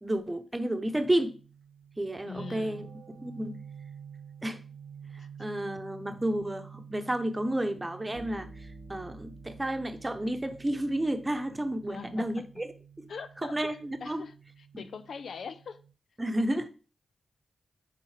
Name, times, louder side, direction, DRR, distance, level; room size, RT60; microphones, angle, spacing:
voice 1, 0.0-1.4 2.0-2.9 3.2-3.6 4.4-4.6 5.1-12.7 13.0-13.1 13.4-14.3 16.2-16.7, right 1 dB, 20° right, 0.9 m, -31 dB
sound 1, 0.8-15.9, right 6 dB, 65° right, 0.8 m, -49 dB
voice 2, 2.3-2.8 5.2-5.3 11.9-12.5 13.1-13.6 14.0-15.8, left 5 dB, 75° left, 0.5 m, -42 dB
10.0 x 3.8 x 3.3 m
cardioid pair, 60°, 0 cm